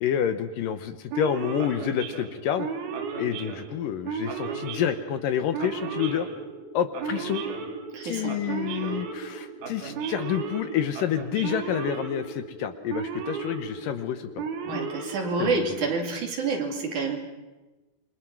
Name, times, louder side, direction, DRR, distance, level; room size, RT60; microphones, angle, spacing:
voice 1, 0.0-2.7 3.2-6.3 6.7-7.4 8.0-14.9 15.4-15.7, left 9 dB, 70° left, 9 dB, 2.4 m, -29 dB
Male speech man speaking / Siren, 1.1-15.8, right 5 dB, 75° right, 4.1 m, -35 dB
voice 2, 7.9-8.4 14.7-17.2, right 4 dB, 55° right, 2 dB, 4.1 m, -28 dB
28.0 x 25.0 x 6.0 m, 1.1 s
omnidirectional pair, 4.4 m